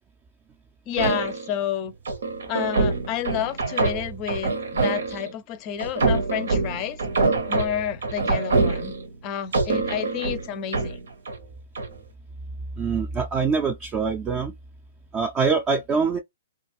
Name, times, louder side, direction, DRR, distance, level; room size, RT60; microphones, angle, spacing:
voice 1, 0.9-1.9 2.5-7.0 7.5-8.9 9.2-11.0, left 10 dB, 30° left, 0.5 m, -30 dB
sound 1, 1.0-1.6 2.1-5.3 5.8-9.2 9.5-11.4 11.8-12.0, right 3 dB, 85° right, 0.9 m, -25 dB
voice 2, 12.8-14.5 15.1-16.2, right 5 dB, 20° right, 0.4 m, -24 dB
2.4 x 2.4 x 3.0 m
hypercardioid pair, 145°, 0 cm